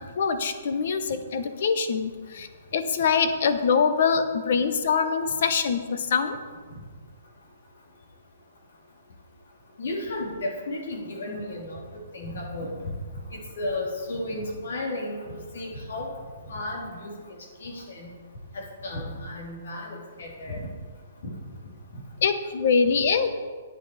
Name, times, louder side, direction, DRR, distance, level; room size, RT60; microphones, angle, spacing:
voice 1, 0.2-6.4 22.2-23.3, left 5 dB, 60° left, 9 dB, 1.0 m, -24 dB
voice 2, 9.8-11.8 12.1-12.7 13.3-16.1 16.5-17.1 17.6-18.1 18.8-20.7 21.2-21.3, left 1 dB, 75° left, -2 dB, 3.4 m, -33 dB
9.6 x 8.9 x 5.0 m, 1.5 s
hypercardioid pair, 160°, 0 cm